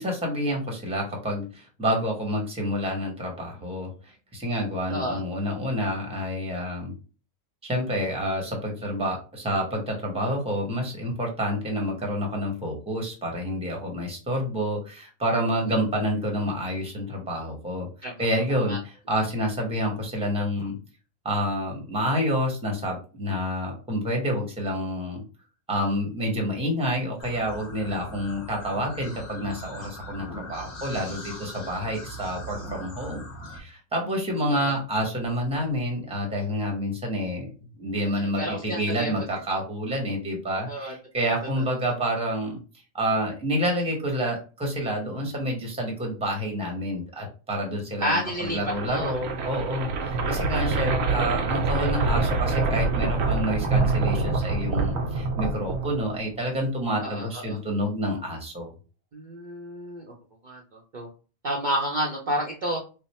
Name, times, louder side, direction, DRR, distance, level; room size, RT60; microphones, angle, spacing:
voice 1, 0.0-6.9 7.6-17.9 18.2-20.8 21.2-25.2 25.7-33.2 33.5-37.5 37.8-42.6 42.9-58.7, equal, 5° right, 1 dB, 0.8 m, -28 dB
voice 2, 4.9-5.2 18.0-18.1 18.7-18.8 34.5-34.7 38.4-39.2 40.6-41.6 48.0-48.6 48.8-49.1 57.0-57.6 59.1-60.0 60.4-61.1 61.4-62.8, equal, 45° right, -2 dB, 0.7 m, -30 dB
sound 1, 27.2-33.6, equal, 60° left, 1.2 m, -40 dB
sound 2, 48.3-56.3, right 3 dB, 80° right, 1.0 m, -26 dB
3.3 x 2.1 x 4.1 m, 0.35 s
omnidirectional pair, 1.4 m